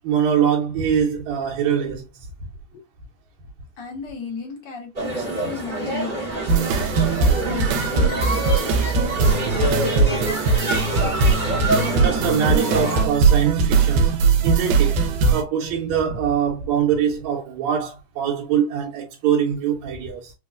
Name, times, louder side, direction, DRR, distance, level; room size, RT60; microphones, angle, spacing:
voice 1, 0.0-2.0 11.9-15.0 15.3-20.3, right 8 dB, 70° right, 2.0 m, -23 dB
voice 2, 3.8-6.3 7.2-8.6, left 5 dB, 60° left, 1.2 m, -35 dB
sound 1, 4.9-13.0, right 1 dB, 40° right, 0.6 m, -26 dB
sound 2, 6.5-15.4, right 4 dB, 90° right, 2.2 m, -20 dB
4.9 x 2.3 x 2.4 m
omnidirectional pair, 3.6 m